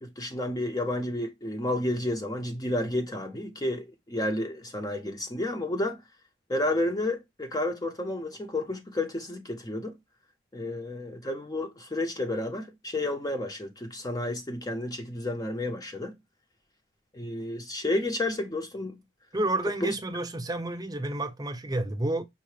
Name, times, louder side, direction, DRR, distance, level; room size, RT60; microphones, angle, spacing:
voice 1, 0.0-6.0 6.5-9.9 10.5-16.1 17.1-19.0 19.8-19.9, left 1 dB, 20° left, 0.5 m, -31 dB
voice 2, 19.3-22.2, right 2 dB, 20° right, 0.6 m, -30 dB
5.5 x 2.1 x 3.1 m
head